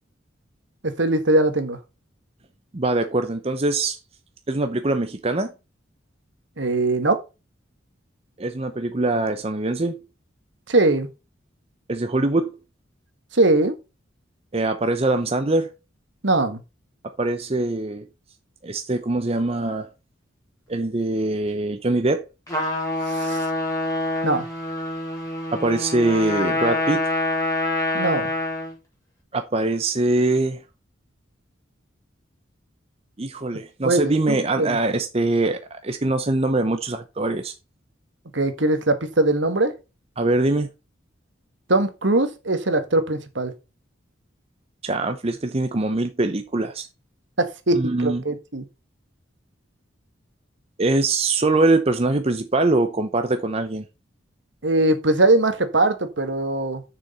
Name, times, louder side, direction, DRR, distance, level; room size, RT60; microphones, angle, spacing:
voice 1, 0.8-1.8 6.6-7.2 10.7-11.1 13.3-13.8 16.2-16.6 23.1-23.5 24.2-24.4 27.9-28.3 33.8-34.8 38.3-39.7 41.7-43.5 47.4-48.6 54.6-56.8, right 2 dB, 70° right, 1.6 m, -21 dB
voice 2, 2.7-4.0 4.5-5.5 8.4-10.0 11.9-12.6 14.5-15.7 17.0-18.1 18.6-19.9 20.7-22.3 25.5-27.1 29.3-30.6 33.2-37.5 40.2-40.7 44.8-46.9 47.7-48.2 50.8-53.8, right 2 dB, 30° right, 0.7 m, -23 dB
Trumpet, 22.5-28.8, left 2 dB, 15° left, 3.9 m, -26 dB
7.0 x 6.5 x 5.6 m
head